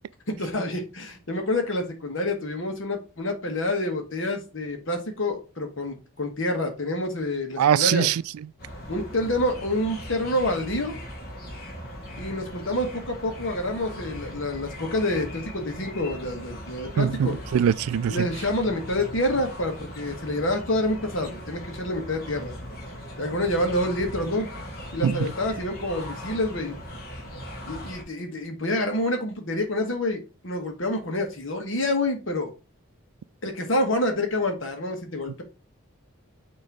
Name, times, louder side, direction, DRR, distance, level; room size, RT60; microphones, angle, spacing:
voice 1, 0.3-8.1 8.9-11.0 12.2-17.4 18.1-22.5 23.2-24.5 24.9-26.8 27.6-32.5 33.4-35.4, left 1 dB, 60° left, 1.5 m, -27 dB
voice 2, 7.6-8.2 17.0-18.3 25.0-25.3, right 8 dB, 90° right, 0.3 m, -22 dB
sound 1, 8.6-28.0, equal, 45° left, 1.7 m, -39 dB
6.5 x 3.1 x 4.7 m
head